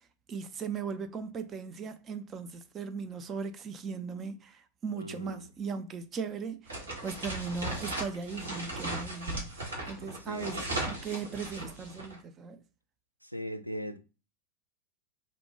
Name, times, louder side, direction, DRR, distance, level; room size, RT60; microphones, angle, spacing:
voice 1, 0.3-6.7 7.0-9.6 9.9-12.6, right 5 dB, 25° right, 0.4 m, -38 dB
voice 2, 5.0-5.4 10.3-10.7 13.2-14.0, equal, 90° left, 0.3 m, -39 dB
sound 1, 6.7-12.1, right 2 dB, 75° right, 1.1 m, -37 dB
2.6 x 2.1 x 3.0 m
figure-of-eight pair, 90°, 0 cm